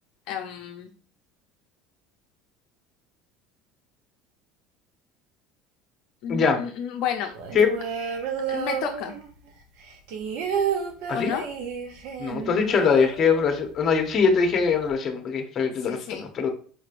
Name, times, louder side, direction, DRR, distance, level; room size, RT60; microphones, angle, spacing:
voice 1, 0.3-0.9 6.2-7.3 8.5-9.1 11.1-11.5 15.9-16.2, left 8 dB, 65° left, 2 dB, 0.5 m, -31 dB
voice 2, 6.3-6.6 7.5-7.7 11.1-11.3 12.2-16.5, left 5 dB, 35° left, 4 dB, 0.9 m, -22 dB
sound 1, 7.3-9.5 9.8-13.7 14.0-14.1 14.4-14.9, right 7 dB, 75° right, 0.8 m, -31 dB
5.2 x 3.1 x 2.5 m, 0.43 s
supercardioid pair, 125°, 0 cm